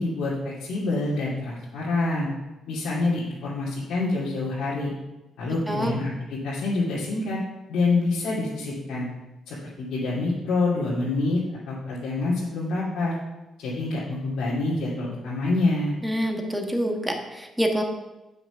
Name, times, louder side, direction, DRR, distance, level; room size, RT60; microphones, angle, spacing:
voice 1, 0.0-2.3 2.7-4.9 5.4-7.4 7.7-9.1 9.5-11.4 11.7-13.1 13.6-15.9, left 2 dB, 80° left, -9 dB, 2.6 m, -26 dB
voice 2, 16.0-17.8, equal, 5° right, 3 dB, 1.4 m, -26 dB
8.0 x 6.0 x 6.0 m, 1.1 s
cardioid pair, 90°, 0 cm